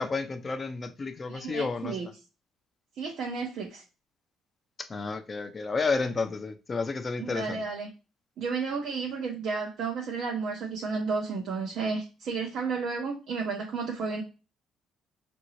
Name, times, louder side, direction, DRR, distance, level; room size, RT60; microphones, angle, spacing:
voice 1, 0.0-2.0 4.8-7.6, left 4 dB, 20° left, 0.4 m, -31 dB
voice 2, 1.3-2.1 3.0-3.8 7.2-7.9 8.4-14.2, right 4 dB, 55° right, 0.7 m, -32 dB
5.6 x 2.6 x 3.1 m
cardioid pair, 170°, 0 cm